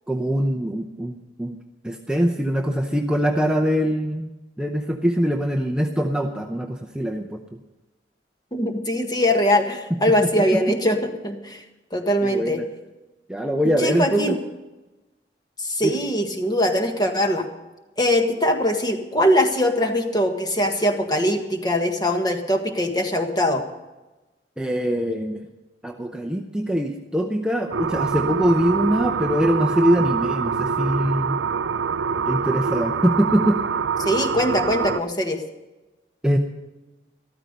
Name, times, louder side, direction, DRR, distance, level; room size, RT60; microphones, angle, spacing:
voice 1, 0.1-1.6 1.8-4.3 4.6-7.4 9.9-10.6 12.2-12.7 13.3-14.4 15.8-16.0 24.6-25.5 25.8-31.4 32.3-33.6 36.2-36.4, equal, 5° right, 2 dB, 0.7 m, -23 dB
voice 2, 8.5-11.0 11.2-11.6 11.9-12.6 13.8-14.4 15.6-17.5 18.0-23.6 34.0-35.4, equal, 20° left, 4 dB, 1.6 m, -22 dB
sound 1, 27.7-35.0, right 5 dB, 90° right, 0.5 m, -25 dB
13.5 x 13.5 x 5.4 m, 1.1 s
head